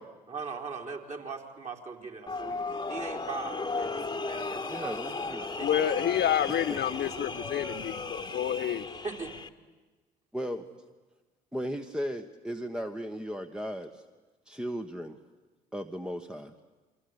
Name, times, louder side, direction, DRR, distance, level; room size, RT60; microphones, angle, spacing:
voice 1, 0.3-7.0 8.8-9.3 10.5-10.6, right 4 dB, 35° right, 1 dB, 4.3 m, -41 dB
sound 1, 2.3-9.5, left 3 dB, 20° left, 1.6 m, -36 dB
voice 2, 4.7-5.5 6.5-6.8 10.3-10.6 11.5-14.0 14.5-15.2 15.7-16.5, equal, 5° right, 6 dB, 1.4 m, -36 dB
voice 3, 5.6-9.0, left 10 dB, 50° left, 10 dB, 0.9 m, -29 dB
28.0 x 24.5 x 8.3 m, 1.3 s
hypercardioid pair, 50°, 21 cm